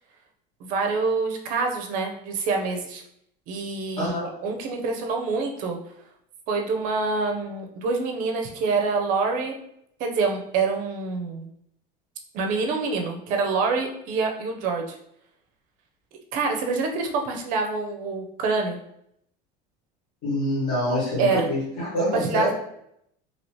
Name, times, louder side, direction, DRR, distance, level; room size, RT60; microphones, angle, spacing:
voice 1, 0.6-3.0 3.5-5.8 6.5-9.5 10.0-11.5 12.3-15.0 16.3-18.8 21.2-21.4 22.1-22.5, right 4 dB, 45° right, 2 dB, 0.5 m, -26 dB
voice 2, 4.0-4.3 20.2-22.5, left 1 dB, 45° left, -9 dB, 1.4 m, -25 dB
2.8 x 2.8 x 3.1 m, 0.74 s
cardioid pair, 175°, 20 cm